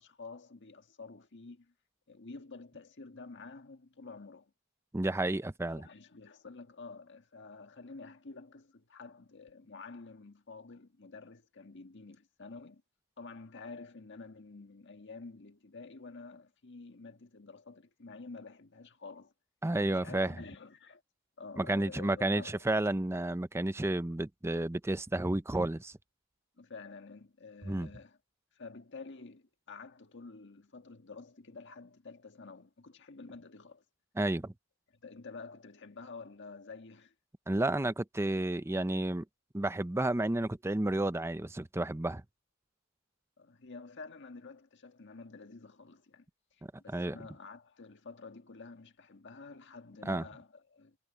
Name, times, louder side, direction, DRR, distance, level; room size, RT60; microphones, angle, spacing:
voice 1, 0.0-1.7 2.1-4.5 5.7-12.8 13.2-19.3 19.9-21.0 21.4-22.6 26.6-28.2 28.5-33.8 35.0-37.1 43.4-46.2 46.5-51.0, left 4 dB, 55° left, 1.6 m, -49 dB
voice 2, 4.9-5.9 19.6-20.3 21.6-25.9 27.6-27.9 34.2-34.5 37.5-39.2 39.5-42.2 46.9-47.2 50.1-50.2, right 1 dB, 10° right, 0.5 m, -31 dB
head